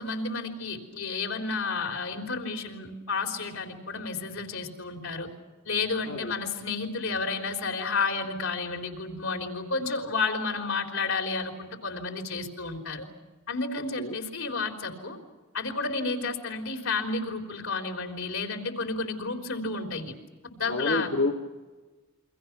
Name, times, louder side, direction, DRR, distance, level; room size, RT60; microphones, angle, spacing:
voice 1, 0.0-5.3 5.7-13.1 13.5-15.2 15.5-20.1 20.4-21.1, left 4 dB, 75° left, 4 dB, 3.7 m, -31 dB
voice 2, 20.7-21.3, left 2 dB, 60° left, 2 dB, 1.6 m, -28 dB
29.0 x 24.0 x 6.0 m, 1.3 s
head